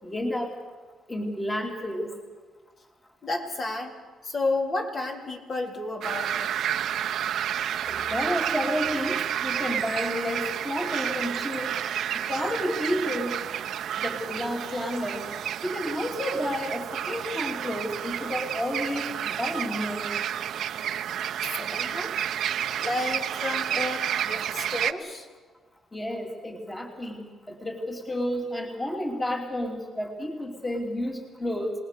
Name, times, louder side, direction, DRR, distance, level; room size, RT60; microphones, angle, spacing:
voice 1, 0.0-0.5 1.1-2.1 7.9-11.8 12.1-13.4 14.0-15.2 15.6-20.2 25.9-31.7, left 1 dB, 15° left, 1 dB, 2.8 m, -31 dB
voice 2, 3.2-3.9 4.2-6.5 21.6-22.2 22.8-25.3, left 2 dB, 45° left, 1 dB, 3.7 m, -31 dB
sound 1, 6.0-24.9, right 10 dB, 70° right, 0.8 m, -30 dB
27.5 x 19.5 x 6.7 m, 1.4 s
cardioid pair, 90°, 0 cm